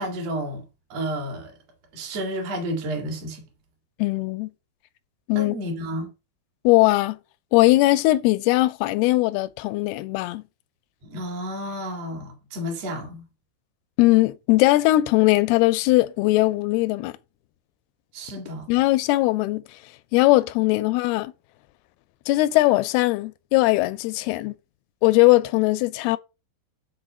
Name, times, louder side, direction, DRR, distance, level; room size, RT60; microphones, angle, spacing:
voice 1, 0.0-1.5 1.9-3.4 5.3-6.1 11.0-13.2 18.1-18.7, equal, 50° right, 2.6 m, -31 dB
voice 2, 4.0-4.5 5.3-5.6 6.6-7.2 7.5-10.4 14.0-17.1 18.7-19.6 20.1-21.3 22.3-24.6 25.0-26.2, left 18 dB, 90° left, 2.6 m, -20 dB
6.3 x 4.3 x 6.0 m
omnidirectional pair, 4.4 m